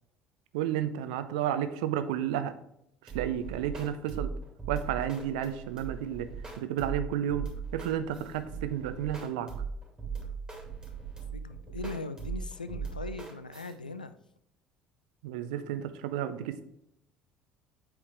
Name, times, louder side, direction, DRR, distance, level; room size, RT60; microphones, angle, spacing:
voice 1, 0.5-2.5 3.0-4.3 4.7-6.3 6.6-7.5 7.7-9.5 15.2-16.6, right 10 dB, 65° right, 11 dB, 0.6 m, -32 dB
sound 1, 3.1-13.7, right 5 dB, 15° right, 2.4 m, -39 dB
voice 2, 11.3-14.1, left 3 dB, 85° left, 12 dB, 0.4 m, -39 dB
8.2 x 4.7 x 3.5 m, 0.77 s
figure-of-eight pair, 55°, 4 cm